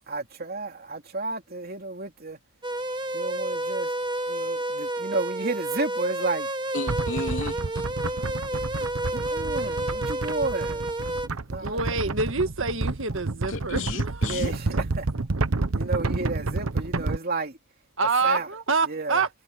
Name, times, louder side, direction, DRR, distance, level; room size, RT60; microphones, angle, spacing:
voice 1, 0.1-2.4 3.1-3.9 4.3-6.5 9.1-10.8 11.5-11.9 14.3-15.1 15.7-17.6 18.2-18.5 18.8-19.2, right 3 dB, 45° right, 2.9 m, -32 dB
sound 1, 2.6-11.3, right 1 dB, 20° right, 1.4 m, -30 dB
voice 2, 6.7-7.8 13.5-14.5, left 2 dB, 60° left, 3.2 m, -33 dB
sound 2, 6.9-17.2, right 3 dB, 75° right, 1.0 m, -29 dB
voice 3, 11.6-14.4 18.0-19.3, right 4 dB, 60° right, 1.8 m, -26 dB
head